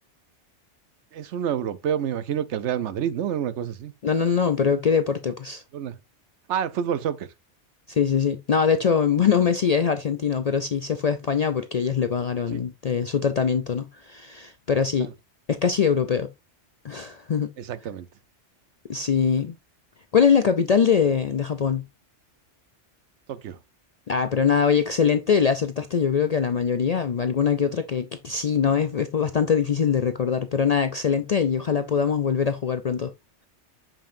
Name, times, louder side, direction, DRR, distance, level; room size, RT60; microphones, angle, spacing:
voice 1, 1.1-3.9 5.7-5.9 6.5-7.3 12.5-12.6 15.0-15.1 17.6-18.1 23.3-23.6, right 9 dB, 75° right, 0.9 m, -28 dB
voice 2, 4.0-5.6 7.9-15.1 15.5-16.3 16.8-17.5 18.9-19.6 20.1-21.8 24.1-33.1, left 6 dB, 55° left, 0.4 m, -23 dB
6.9 x 5.9 x 2.6 m
omnidirectional pair, 1.2 m